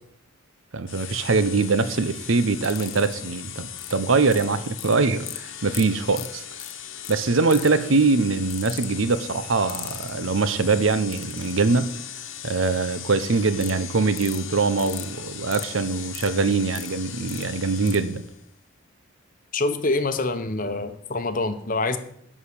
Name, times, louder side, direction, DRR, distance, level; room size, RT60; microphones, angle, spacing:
voice 1, 0.7-6.4 7.1-11.9 12.4-18.2, right 4 dB, 70° right, 13 dB, 0.8 m, -23 dB
sound 1, 0.9-18.4, left 10 dB, 65° left, 1.2 m, -39 dB
sound 2, 2.6-3.1 3.8-3.9 4.3-4.9 5.3-5.4 5.7-5.9 6.1-6.3 6.6-6.7 7.0-7.1 7.5-7.8 8.5-8.9 9.7-10.1 11.1-11.5 13.6-13.7 14.2-14.4 14.8-15.1 15.5-15.7 16.1-16.9 17.3-17.4 17.9-18.0, left 15 dB, 90° left, 0.9 m, -36 dB
voice 2, 19.5-22.0, left 2 dB, 40° left, 9 dB, 0.9 m, -25 dB
11.0 x 4.9 x 8.4 m, 0.70 s
head